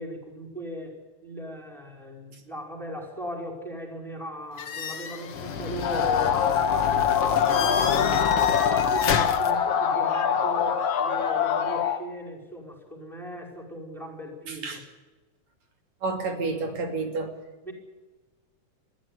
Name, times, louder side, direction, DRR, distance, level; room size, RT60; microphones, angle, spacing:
voice 1, 0.0-14.8 17.6-17.7, equal, ahead, 2 dB, 5.1 m, -38 dB
sound 1, 4.6-9.5, left 6 dB, 55° left, 2.2 m, -30 dB
sound 2, 5.8-12.0, left 8 dB, 85° left, 3.1 m, -24 dB
voice 2, 14.5-14.8 16.0-17.3, right 3 dB, 65° right, 5 dB, 3.9 m, -30 dB
21.5 x 14.5 x 9.6 m, 1.2 s
omnidirectional pair, 3.3 m